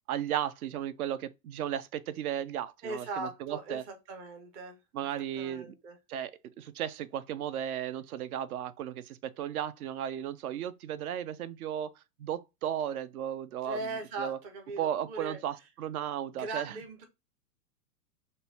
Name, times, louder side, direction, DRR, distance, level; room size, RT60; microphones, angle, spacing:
voice 1, 0.1-3.8 4.9-5.7 6.1-6.3 6.6-11.9 12.2-13.9 14.2-14.4 14.8-16.8, right 10 dB, 65° right, 0.6 m, -35 dB
voice 2, 2.8-5.1 5.4-6.0 13.6-15.4 16.2-17.0, right 3 dB, 15° right, 0.4 m, -39 dB
5.1 x 2.1 x 2.7 m
hypercardioid pair, 115°, 46 cm